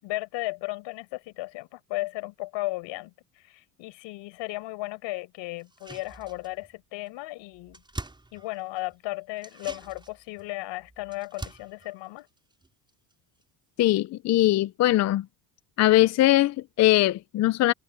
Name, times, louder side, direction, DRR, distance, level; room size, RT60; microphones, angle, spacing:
voice 1, 0.0-7.8 8.3-12.3, left 20 dB, 75° left, 7.4 m, -35 dB
sound 1, 5.6-6.8 7.1-7.2 7.4-8.9 9.4-13.1 13.4-13.5, right 2 dB, 10° right, 6.1 m, -44 dB
voice 2, 13.8-15.2 15.8-17.7, left 15 dB, 40° left, 0.5 m, -21 dB
cardioid pair, 135°, 44 cm